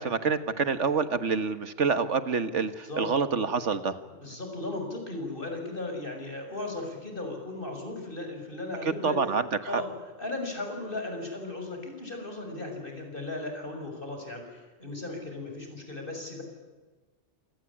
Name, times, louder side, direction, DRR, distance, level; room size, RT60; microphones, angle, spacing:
voice 1, 0.0-4.0 9.0-9.8, right 5 dB, 90° right, 11 dB, 1.9 m, -27 dB
voice 2, 4.2-9.2 9.7-9.9 10.2-16.4, left 2 dB, 50° left, 4 dB, 6.8 m, -36 dB
27.0 x 19.5 x 9.9 m, 1.3 s
omnidirectional pair, 1.2 m